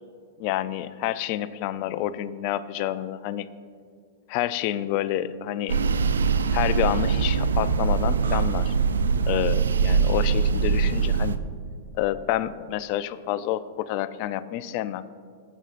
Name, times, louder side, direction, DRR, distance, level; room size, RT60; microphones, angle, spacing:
voice 1, 0.4-3.5 4.3-5.8 6.5-8.7 9.3-11.4 11.9-15.0, left 13 dB, 50° left, 15 dB, 0.4 m, -28 dB
sound 1, 5.7-11.4, right 5 dB, 85° right, 0.4 m, -22 dB
16.5 x 7.9 x 2.5 m, 2.2 s
hypercardioid pair, 115°, 0 cm